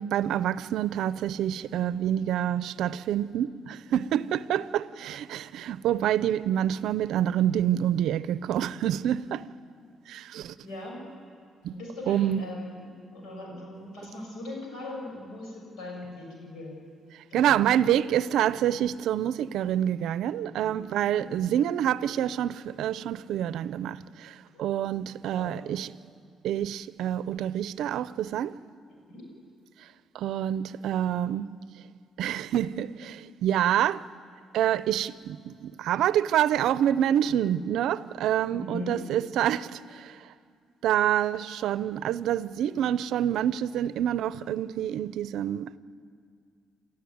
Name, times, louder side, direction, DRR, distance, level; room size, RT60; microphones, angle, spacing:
voice 1, 0.0-9.4 10.1-10.5 11.6-11.8 12.1-12.4 17.3-25.9 26.4-28.6 30.1-31.5 32.2-34.0 34.5-40.2 40.8-45.8, right 10 dB, 80° right, 0.6 m, -27 dB
voice 2, 10.6-11.1 11.7-16.8 17.3-17.6 20.5-20.8 21.1-21.4 24.5-24.6 24.9-25.0 25.4-25.7 29.1-29.3 38.5-39.0, left 1 dB, 85° left, 6.8 m, -40 dB
29.0 x 13.5 x 9.4 m
cardioid pair, 90°, 0 cm